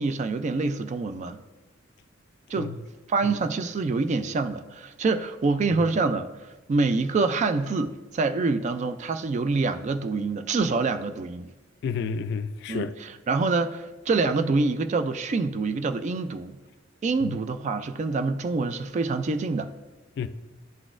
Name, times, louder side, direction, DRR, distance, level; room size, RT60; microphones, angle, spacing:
voice 1, 0.0-1.4 2.5-2.7 3.1-6.3 6.7-11.5 12.7-16.6 17.0-19.7, right 3 dB, 40° right, 0.3 m, -26 dB
voice 2, 11.8-12.9 17.2-17.3 20.2-20.3, left 6 dB, 60° left, 0.3 m, -30 dB
10.5 x 4.0 x 2.4 m
head